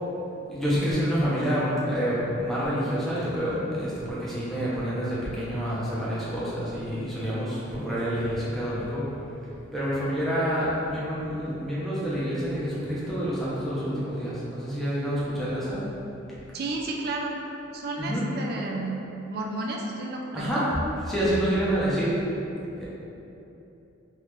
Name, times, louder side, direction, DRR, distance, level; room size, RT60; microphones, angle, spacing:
voice 1, 0.5-9.1 9.7-15.8 18.0-18.2 20.3-20.7 21.0-22.1 22.8-22.9, equal, ahead, -10 dB, 0.8 m, -28 dB
voice 2, 16.5-17.4 17.7-19.0 19.3-20.7, right 2 dB, 50° right, 0 dB, 0.4 m, -32 dB
3.3 x 3.2 x 3.2 m, 2.9 s
head